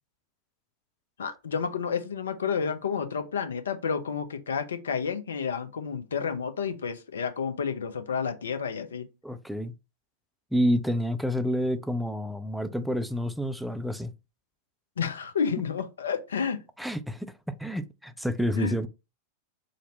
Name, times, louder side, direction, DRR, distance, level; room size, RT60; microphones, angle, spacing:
voice 1, 1.2-9.1 15.0-16.6 18.6-18.7, left 6 dB, 65° left, 0.6 m, -30 dB
voice 2, 9.2-9.7 10.5-14.1 16.8-17.3 17.6-18.9, equal, ahead, 0.4 m, -28 dB
4.0 x 2.1 x 4.0 m
figure-of-eight pair, 90°, 0 cm